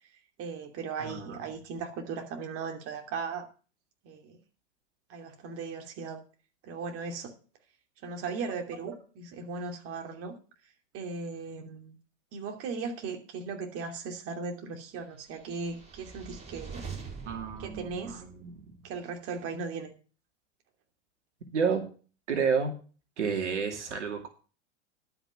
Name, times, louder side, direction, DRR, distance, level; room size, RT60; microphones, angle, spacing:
voice 1, 0.4-3.5 4.0-4.4 5.1-6.2 6.6-7.3 8.0-10.4 10.9-11.9 12.3-16.9 17.6-18.2 18.8-19.9, right 4 dB, 40° right, 5 dB, 2.8 m, -37 dB
voice 2, 1.0-1.4 17.3-18.5 21.5-21.8 22.3-22.7 23.2-24.3, right 6 dB, 75° right, 5 dB, 2.5 m, -30 dB
sound 1, 15.3-18.7, right 5 dB, 20° right, 5.5 m, -44 dB
12.0 x 5.9 x 7.4 m, 0.36 s
hypercardioid pair, 100°, 35 cm